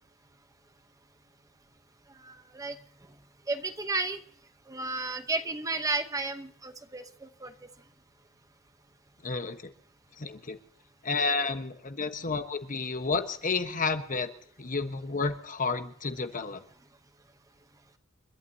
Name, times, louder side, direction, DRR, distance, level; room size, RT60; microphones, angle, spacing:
voice 1, 2.2-2.7 3.5-4.2 4.7-7.0 7.4-7.5, right 3 dB, 15° right, 8 dB, 0.9 m, -32 dB
voice 2, 9.2-9.7 10.2-10.6 11.0-14.3 14.6-16.6, left 4 dB, 40° left, 8 dB, 1.2 m, -31 dB
30.0 x 12.0 x 2.8 m, 0.62 s
head